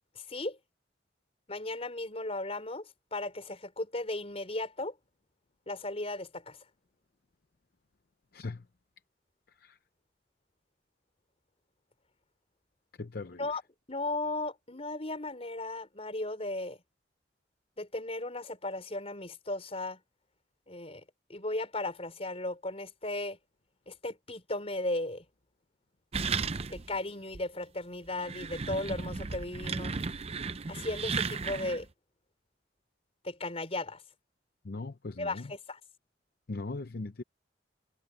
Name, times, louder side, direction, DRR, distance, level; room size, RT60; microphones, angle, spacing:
voice 1, 0.2-0.6 1.5-4.9 5.7-6.6 13.4-13.6 13.9-16.8 17.8-20.0 20.7-21.0 21.3-23.4 23.9-25.2 26.7-30.0 30.7-31.9 33.2-34.0 35.2-35.8, left 2 dB, 35° left, 5.1 m, -36 dB
voice 2, 13.0-13.4 34.6-35.5 36.5-37.2, left 3 dB, 55° left, 0.7 m, -39 dB
sound 1, 26.1-27.0 27.3-27.4 28.1-31.9, right 4 dB, 35° right, 0.6 m, -35 dB
head